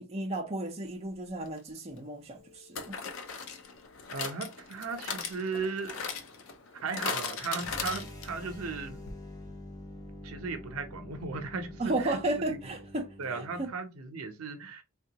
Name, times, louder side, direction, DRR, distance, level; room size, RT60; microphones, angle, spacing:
voice 1, 0.0-2.9 11.8-13.7, right 2 dB, 30° right, 0.6 m, -34 dB
sound 1, 1.5-1.6 2.7-8.5 8.8-8.9 9.1-9.2, left 5 dB, 70° left, 0.5 m, -38 dB
voice 2, 4.1-6.0 6.7-9.0 10.2-12.6 13.2-14.8, right 4 dB, 90° right, 0.6 m, -36 dB
sound 2, 7.6-13.7, left 1 dB, 15° left, 0.7 m, -46 dB
3.6 x 2.3 x 2.7 m
head